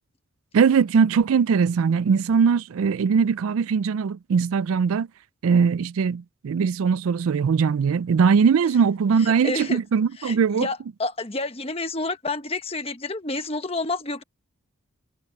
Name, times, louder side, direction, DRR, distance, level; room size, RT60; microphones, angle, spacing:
voice 1, 0.5-5.1 5.4-10.7, right 6 dB, 75° right, 0.4 m, -20 dB
voice 2, 9.4-9.8 10.2-14.2, left 2 dB, 25° left, 1.3 m, -29 dB
head